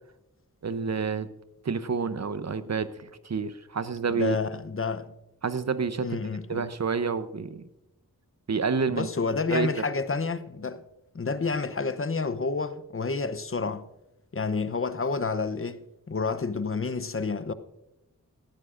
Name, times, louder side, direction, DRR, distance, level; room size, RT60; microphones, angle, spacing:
voice 1, 0.6-1.3 1.6-4.4 5.4-6.2 6.5-7.6 8.5-9.1 9.5-9.8, right 5 dB, 55° right, 0.7 m, -29 dB
voice 2, 4.1-5.1 6.0-6.7 8.9-10.8 11.1-13.9 14.3-17.5, left 4 dB, 40° left, 0.7 m, -29 dB
18.0 x 14.5 x 2.5 m
wide cardioid pair, 65°, 33 cm